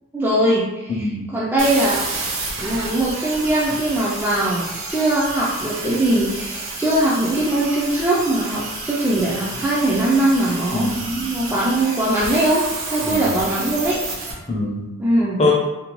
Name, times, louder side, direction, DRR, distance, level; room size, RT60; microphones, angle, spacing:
voice 1, 0.1-2.0 2.6-14.0 15.0-15.4, right 1 dB, 10° right, -8 dB, 0.3 m, -21 dB
voice 2, 0.9-1.2 10.7-11.1 13.0-13.4 14.5-14.9 15.4-15.5, left 2 dB, 30° left, -4 dB, 0.6 m, -23 dB
sound 1, 1.6-14.3, right 3 dB, 70° right, 0.6 m, -30 dB
2.6 x 2.1 x 2.9 m, 1.0 s
head